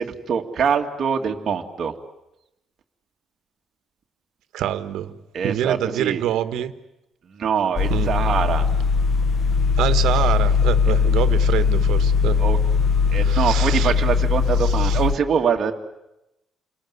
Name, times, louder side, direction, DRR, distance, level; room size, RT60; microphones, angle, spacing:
voice 1, 0.0-1.9 5.3-6.2 7.2-8.7 12.4-12.6 13.1-15.7, right 7 dB, 35° right, 2.2 m, -24 dB
voice 2, 4.5-6.7 7.9-8.1 9.8-12.4 13.2-13.9 14.8-15.0, right 11 dB, 75° right, 1.5 m, -26 dB
sound 1, 7.8-15.1, left 5 dB, 25° left, 1.2 m, -19 dB
29.0 x 20.0 x 9.7 m
cardioid pair, 180°, 0 cm